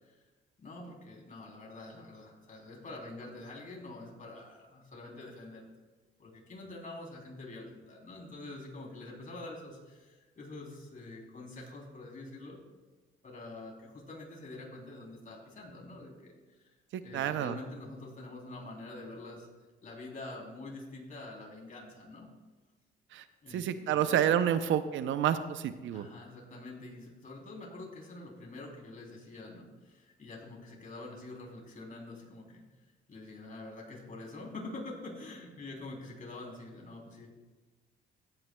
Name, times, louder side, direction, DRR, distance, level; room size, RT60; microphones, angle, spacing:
voice 1, 0.6-5.7 6.2-12.6 13.2-16.7 17.0-19.5 19.8-22.3 23.4-24.2 25.9-32.6 33.1-37.3, left 2 dB, 40° left, -1 dB, 3.3 m, -46 dB
voice 2, 16.9-17.6 23.1-23.2 23.5-26.1, right 10 dB, 75° right, 11 dB, 0.6 m, -29 dB
17.0 x 9.0 x 2.2 m, 1.3 s
cardioid pair, 90°, 20 cm